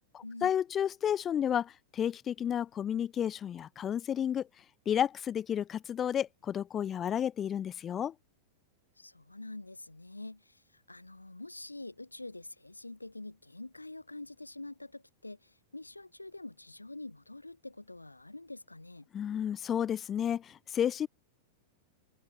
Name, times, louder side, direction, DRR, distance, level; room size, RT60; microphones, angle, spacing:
voice 1, 0.1-4.5 4.8-8.1 19.1-21.1, left 9 dB, 25° left, 1.5 m, -31 dB
voice 2, 9.0-19.1, left 2 dB, 85° left, 5.4 m, -46 dB
figure-of-eight pair, 95°, 0 cm